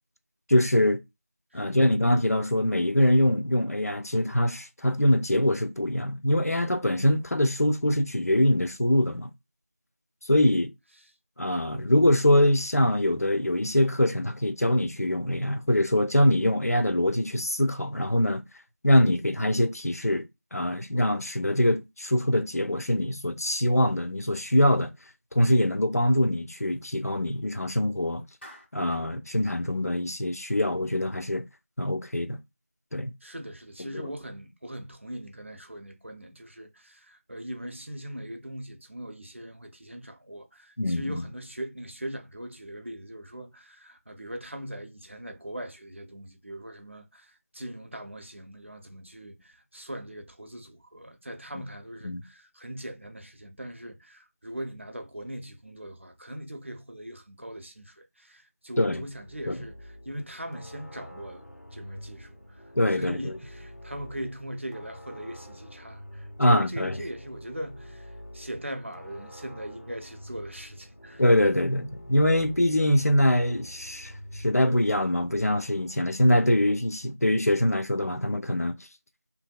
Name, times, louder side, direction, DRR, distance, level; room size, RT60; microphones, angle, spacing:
voice 1, 0.5-1.0 1.5-9.3 10.2-10.7 11.4-18.4 18.8-24.9 25.3-28.2 28.7-31.4 31.8-32.4 32.9-33.1 33.8-34.1 40.8-41.2 51.5-51.6 52.0-52.2 58.8-59.0 59.5-59.6 62.8-63.3 66.4-67.0 71.2-78.8, left 1 dB, 75° left, 0.6 m, -23 dB
voice 2, 1.5-1.9 33.2-61.4 61.7-62.6 62.9-71.2, right 1 dB, 50° right, 0.6 m, -40 dB
Clapping, 28.4-29.1, equal, 45° left, 1.4 m, -49 dB
sound 1, 59.1-77.2, equal, 90° left, 1.5 m, -47 dB
2.9 x 2.7 x 2.3 m
figure-of-eight pair, 175°, 8 cm